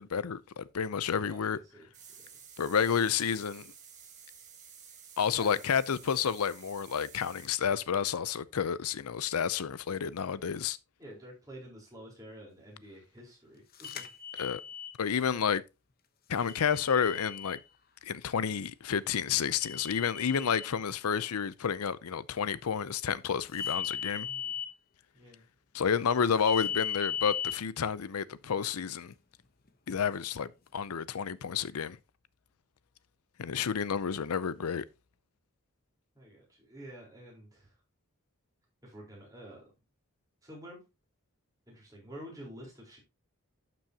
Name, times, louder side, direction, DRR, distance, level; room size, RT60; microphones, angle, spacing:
voice 1, 0.0-1.6 2.6-3.7 5.2-10.8 14.3-14.6 15.0-15.6 16.3-17.6 18.0-24.3 25.7-29.1 29.9-32.0 33.4-34.8, left 7 dB, 90° left, 0.5 m, -30 dB
voice 2, 1.2-1.9 2.2-2.3 5.4-5.5 11.0-14.0 24.1-24.6 25.1-25.4 36.1-37.7 38.8-39.6 40.4-40.8 41.7-43.0, equal, 15° right, 4.0 m, -49 dB
sound 1, 1.9-7.5, right 7 dB, 35° right, 1.6 m, -52 dB
sound 2, 13.8-14.9 16.5-17.6 19.6-20.7 23.5-24.7 26.5-27.5, left 8 dB, 40° left, 1.0 m, -36 dB
11.5 x 6.2 x 2.8 m
head